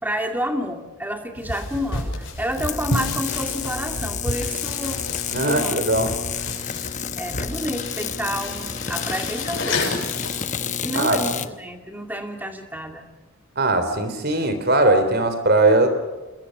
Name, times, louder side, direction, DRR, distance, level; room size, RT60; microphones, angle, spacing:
voice 1, 0.0-5.0 5.4-5.9 7.2-10.0 10.8-13.1, equal, 10° right, 5 dB, 2.4 m, -29 dB
sound 1, 1.4-10.7, left 2 dB, 55° left, 6.8 m, -31 dB
sound 2, 2.5-11.5, left 7 dB, 35° left, 1.0 m, -30 dB
voice 2, 5.3-6.1 10.9-11.2 13.6-15.9, right 2 dB, 45° right, 9 dB, 3.8 m, -19 dB
28.5 x 22.0 x 6.7 m, 1.2 s
head